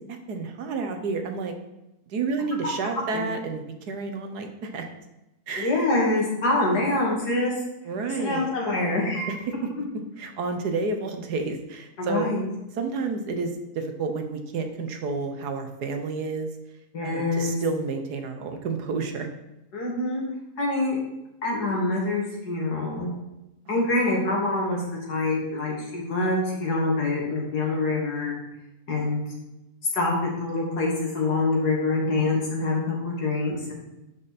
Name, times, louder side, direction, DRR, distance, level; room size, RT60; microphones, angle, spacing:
voice 1, 0.1-1.5 2.1-4.9 5.5-5.9 6.7-6.8 7.8-8.5 9.3-9.4 10.2-12.3 12.7-13.5 13.7-16.5 17.0-19.3 23.7-24.3, right 4 dB, 70° right, 6 dB, 1.6 m, -30 dB
voice 2, 5.6-7.5 8.2-9.4 12.0-12.5 16.9-17.6 19.7-20.2 20.6-21.0 21.4-23.1 23.7-28.3 28.9-29.2 29.9-30.1 30.4-33.7, left 2 dB, 70° left, -2 dB, 2.8 m, -25 dB
12.0 x 5.6 x 4.2 m, 0.94 s
omnidirectional pair, 1.8 m